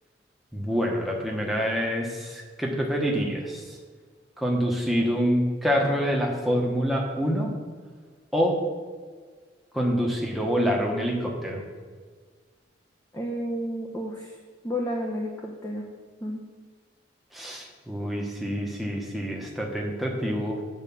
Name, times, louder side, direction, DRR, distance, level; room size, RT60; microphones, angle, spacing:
voice 1, 0.5-3.8 4.4-7.5 8.3-8.6 9.7-11.6 17.3-20.6, equal, ahead, -2 dB, 1.2 m, -26 dB
voice 2, 13.1-14.4 14.6-15.8 16.2-16.4, equal, 15° left, -2 dB, 0.9 m, -31 dB
8.9 x 4.9 x 7.2 m, 1.5 s
head